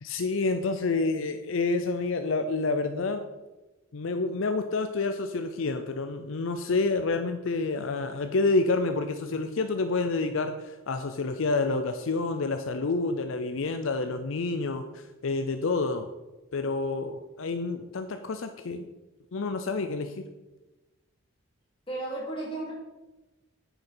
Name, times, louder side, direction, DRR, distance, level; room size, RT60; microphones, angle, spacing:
voice 1, 0.0-3.2 3.9-16.1 16.5-18.9 19.3-20.1, left 3 dB, 70° left, 7 dB, 0.5 m, -28 dB
voice 2, 21.9-22.7, right 2 dB, 25° left, -5 dB, 3.0 m, -34 dB
9.0 x 6.8 x 4.4 m, 1.1 s
head